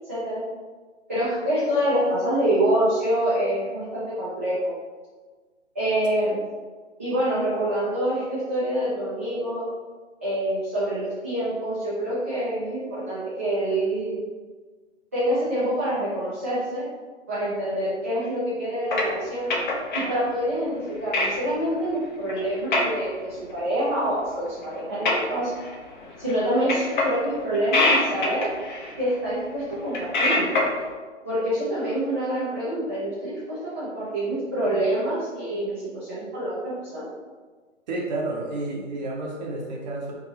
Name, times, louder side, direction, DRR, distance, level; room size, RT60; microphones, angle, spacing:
voice 1, 0.1-0.4 1.1-4.7 5.7-6.4 7.0-9.6 10.2-14.2 15.1-16.9 17.3-19.5 19.9-25.5 26.2-28.5 29.0-30.6 31.2-37.1, right 1 dB, 15° right, -12 dB, 0.3 m, -26 dB
sound 1, 18.9-20.1 20.7-20.9 21.1-21.3 21.7-21.9 22.3-22.4 22.7-22.9 23.4-23.5 24.1-24.2 24.6-25.7 26.0-26.4 26.7-27.3 27.5-29.2 29.7-30.8, left 2 dB, 40° left, 0.6 m, -24 dB
voice 2, 37.9-40.1, right 2 dB, 35° right, -1 dB, 0.7 m, -30 dB
4.7 x 2.7 x 2.8 m, 1.4 s
figure-of-eight pair, 130°, 36 cm